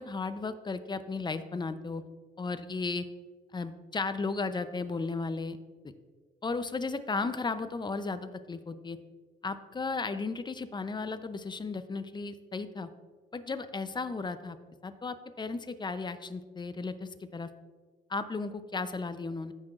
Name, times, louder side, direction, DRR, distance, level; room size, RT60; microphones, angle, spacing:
voice 1, 0.0-2.0 2.4-3.1 3.5-5.6 6.4-9.0 9.4-12.9 13.3-14.6 14.8-17.5 18.1-19.5, left 4 dB, 20° left, 11 dB, 0.6 m, -35 dB
15.0 x 5.9 x 2.5 m, 1.4 s
cardioid pair, 90°, 20 cm